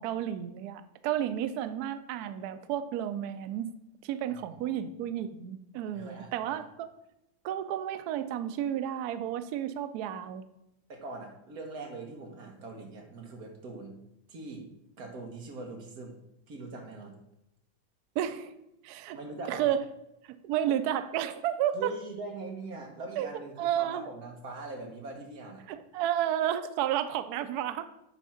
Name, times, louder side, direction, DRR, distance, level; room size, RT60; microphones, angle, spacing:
voice 1, 0.0-3.7 4.0-6.9 7.4-10.4 18.2-18.5 18.8-19.2 19.5-19.8 20.4-21.9 23.2-23.3 23.6-24.1 25.7-27.9, right 10 dB, 80° right, 11 dB, 0.8 m, -31 dB
voice 2, 4.3-4.8 5.9-6.6 10.9-14.0 14.3-14.7 15.0-16.2 16.5-17.2 19.1-19.7 21.7-25.6, right 3 dB, 50° right, 2 dB, 1.5 m, -42 dB
8.5 x 3.5 x 5.6 m, 0.84 s
omnidirectional pair, 2.2 m